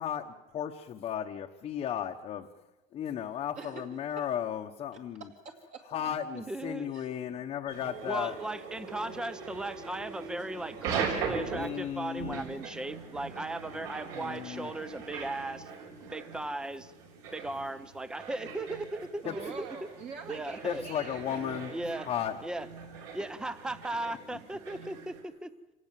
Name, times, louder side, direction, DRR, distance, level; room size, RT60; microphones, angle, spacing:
voice 1, 0.0-2.5 2.9-5.3 5.9-8.3 11.5-12.4 14.1-14.7 19.2-19.3 20.6-21.7 22.1-22.4, left 9 dB, 30° left, 1 dB, 1.1 m, -35 dB
voice 2, 5.4-5.8 6.8-7.2 19.2-21.4 23.2-23.3 24.7-25.0, right 5 dB, 40° right, 2 dB, 2.4 m, -45 dB
voice 3, 6.3-6.9 8.0-15.7 16.1-16.9 17.3-19.7 20.3-20.8 21.7-22.1 22.4-22.7 23.1-25.5, right 2 dB, 5° right, 14 dB, 0.8 m, -37 dB
sound 1, 7.7-25.2, right 6 dB, 65° right, 5.9 m, -41 dB
26.0 x 18.0 x 7.5 m, 1.0 s
cardioid pair, 155°, 18 cm